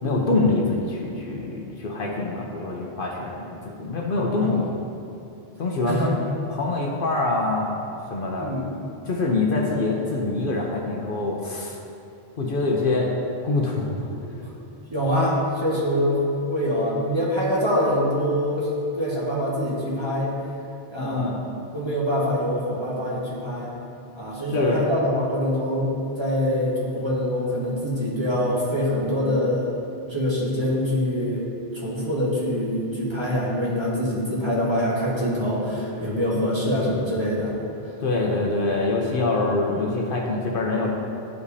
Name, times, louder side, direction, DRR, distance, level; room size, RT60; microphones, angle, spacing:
voice 1, 0.0-4.7 5.6-6.1 6.5-7.8 8.1-8.6 9.0-11.8 12.4-13.1 13.4-14.1 21.0-21.4 24.5-24.8 38.0-40.9, left 3 dB, 60° left, -1 dB, 0.9 m, -25 dB
voice 2, 14.1-14.5 14.9-16.2 16.5-18.7 18.9-20.3 20.9-21.2 21.7-23.7 24.1-29.7 30.1-37.5, equal, 25° right, -6 dB, 1.5 m, -24 dB
12.0 x 5.0 x 2.7 m, 2.7 s
omnidirectional pair, 1.1 m